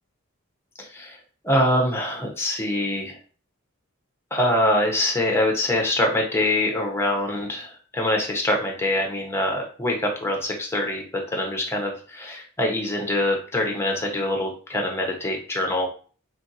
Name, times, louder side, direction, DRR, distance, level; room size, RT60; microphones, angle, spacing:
voice 1, 0.8-1.2 1.4-3.2 4.3-15.9, left 1 dB, 10° left, 1 dB, 0.7 m, -24 dB
3.2 x 2.5 x 2.6 m, 0.40 s
head